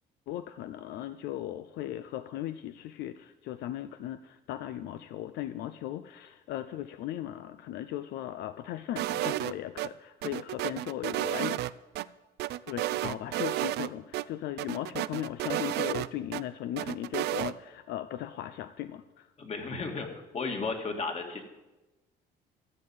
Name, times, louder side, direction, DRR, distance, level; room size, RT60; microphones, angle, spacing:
voice 1, 0.3-11.7 12.7-19.3, left 12 dB, 80° left, 12 dB, 0.6 m, -37 dB
sound 1, 9.0-9.9 10.2-12.0 12.4-13.9 14.1-14.2 14.6-16.4 16.8-17.5, right 15 dB, 75° right, 0.5 m, -32 dB
voice 2, 19.4-20.1 20.3-21.4, left 4 dB, 40° left, 4 dB, 2.3 m, -33 dB
14.0 x 6.8 x 8.8 m, 1.1 s
cardioid pair, 110°, 17 cm